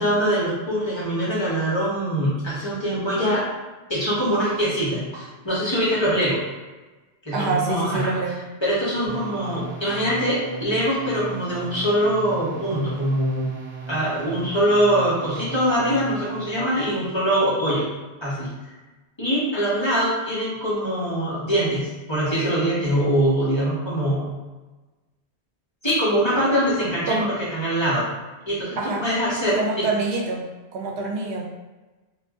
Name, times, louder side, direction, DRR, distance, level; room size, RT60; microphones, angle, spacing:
voice 1, 0.0-3.4 3.9-6.4 7.3-8.1 8.6-13.5 13.9-17.9 18.2-18.5 19.2-24.3 25.8-27.1 27.5-28.1 28.4-29.9, equal, 30° left, -8 dB, 0.8 m, -23 dB
voice 2, 7.3-8.5 27.1-27.3 28.8-29.1 29.6-30.5 30.7-31.4, right 3 dB, 85° right, 1 dB, 0.9 m, -26 dB
sound 1, 9.1-16.6, right 5 dB, 45° right, 0.7 m, -37 dB
2.5 x 2.3 x 3.4 m, 1.2 s
omnidirectional pair, 1.1 m